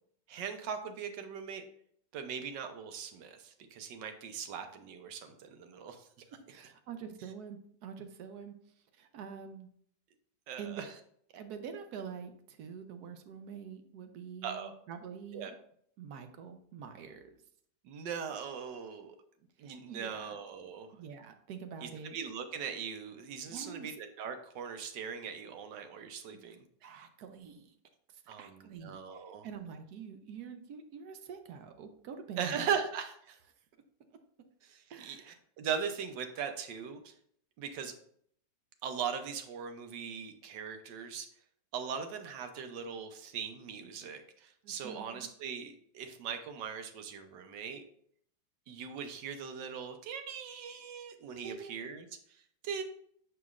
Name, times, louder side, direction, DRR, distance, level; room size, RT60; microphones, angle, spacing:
voice 1, 0.3-1.6 2.1-6.1 10.5-10.9 14.4-14.7 15.3-15.5 17.8-19.2 19.6-20.9 21.8-26.6 28.3-29.5 32.4-33.4 34.6-37.1 37.6-37.9 38.8-41.3 41.7-47.8 48.7-52.8, right 7 dB, 85° right, 7 dB, 1.4 m, -40 dB
voice 2, 6.5-8.5 8.9-9.7 10.6-10.9 11.3-15.6 16.0-17.4 19.6-20.4 20.9-22.2 23.5-23.9 26.8-27.7 28.1-32.6 34.9-35.4 44.6-45.3 51.4-51.7, right 7 dB, 70° right, 7 dB, 1.1 m, -46 dB
8.0 x 4.9 x 2.4 m, 0.65 s
omnidirectional pair, 1.9 m